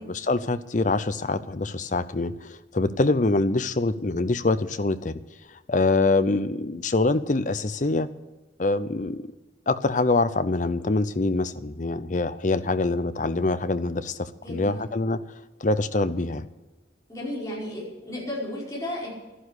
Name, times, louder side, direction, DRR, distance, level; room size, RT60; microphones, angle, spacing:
voice 1, 0.0-5.2 5.7-8.1 8.6-9.2 9.7-15.2 15.6-16.4, left 2 dB, 40° left, 13 dB, 0.6 m, -25 dB
voice 2, 14.4-14.8 17.1-19.1, left 1 dB, 15° left, -7 dB, 5.2 m, -33 dB
12.0 x 11.0 x 8.2 m, 1.2 s
head